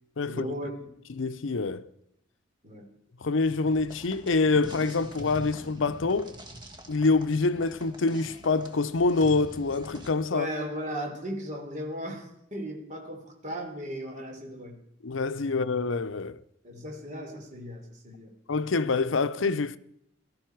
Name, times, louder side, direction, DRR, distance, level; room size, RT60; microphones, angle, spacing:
voice 1, 0.3-0.9 2.6-2.8 10.3-14.8 16.6-18.3, equal, 40° right, 3.3 m, -36 dB
voice 2, 1.2-1.9 3.2-6.3 6.9-10.5 15.0-16.4 18.5-19.8, left 3 dB, 70° left, 0.6 m, -26 dB
sound 1, 3.4-10.1, right 1 dB, 25° right, 1.7 m, -45 dB
18.0 x 13.0 x 4.6 m
head